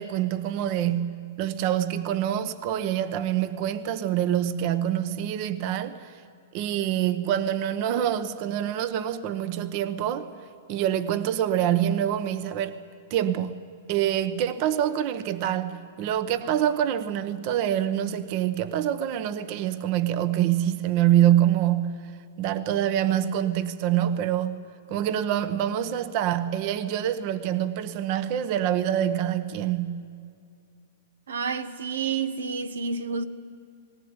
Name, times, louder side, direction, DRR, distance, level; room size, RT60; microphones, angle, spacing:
voice 1, 0.0-6.2 6.5-10.3 10.7-12.8 13.1-13.5 13.9-22.0 22.4-24.6 24.9-30.0, right 11 dB, 45° right, 1.0 m, -25 dB
voice 2, 31.3-33.3, right 5 dB, 90° right, 1.1 m, -29 dB
19.5 x 19.0 x 9.7 m
hypercardioid pair, 140°, 0 cm